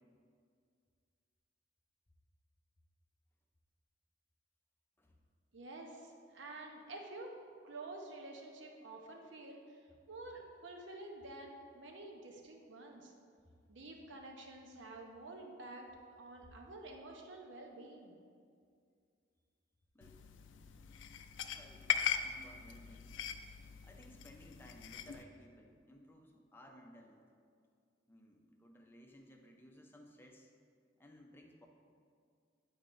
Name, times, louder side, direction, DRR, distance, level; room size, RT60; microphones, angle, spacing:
voice 1, 5.5-7.3 7.6-9.8 10.1-13.1 13.7-15.9 16.2-18.1, right 2 dB, 75° right, 2 dB, 0.8 m, -49 dB
sound 1, 20.0-25.2, left 8 dB, 75° left, 0.4 m, -40 dB
voice 2, 20.7-23.2 23.8-27.2 28.1-30.5 31.0-31.7, equal, 10° left, 2 dB, 0.5 m, -59 dB
9.3 x 4.7 x 2.5 m, 2.2 s
head